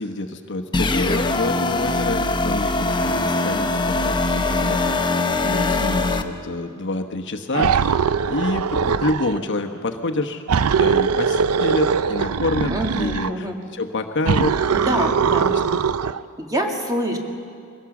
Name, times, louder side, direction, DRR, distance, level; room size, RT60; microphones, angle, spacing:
voice 1, 0.0-5.0 5.4-15.6, left 2 dB, 55° left, 5 dB, 1.2 m, -27 dB
sound 1, 0.7-6.2, left 2 dB, 20° left, 0.8 m, -22 dB
sound 2, 7.5-9.4 10.5-13.3 14.3-16.2, right 6 dB, 90° right, 0.5 m, -21 dB
voice 2, 12.7-13.6 14.7-15.5 16.4-17.2, right 1 dB, 15° right, 2 dB, 1.9 m, -25 dB
22.0 x 16.5 x 7.2 m, 2.3 s
head